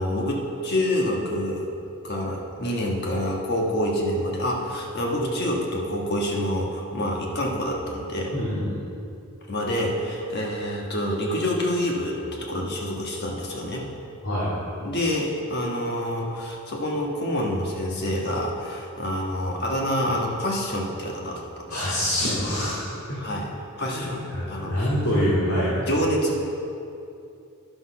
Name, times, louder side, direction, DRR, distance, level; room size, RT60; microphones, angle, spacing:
voice 1, 0.0-1.6 2.0-8.3 9.5-13.8 14.8-21.4 21.8-21.9 23.2-23.5 23.8-24.9 25.6-26.5, left 1 dB, 50° left, -1 dB, 1.3 m, -27 dB
voice 2, 8.3-8.8 14.2-14.5 21.7-23.2 23.9-25.7, equal, 65° left, -9 dB, 2.2 m, -25 dB
10.5 x 6.1 x 5.7 m, 2.6 s
head